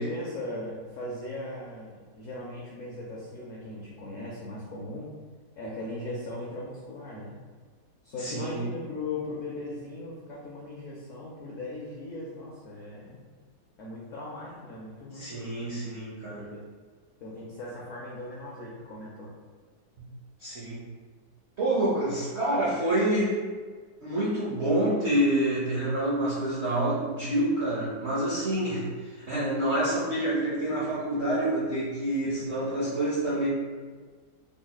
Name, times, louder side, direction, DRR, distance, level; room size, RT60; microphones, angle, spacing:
voice 1, 0.0-5.1 5.6-7.4 8.0-13.2 13.8-16.6 17.2-19.3 32.2-32.3, left 2 dB, 85° left, -4 dB, 0.6 m, -38 dB
voice 2, 8.2-8.6 15.1-16.5 20.0-20.1 20.4-20.8 21.6-23.4 24.0-33.5, right 1 dB, 55° right, -9 dB, 0.7 m, -27 dB
3.9 x 3.1 x 2.2 m, 1.5 s
omnidirectional pair, 2.0 m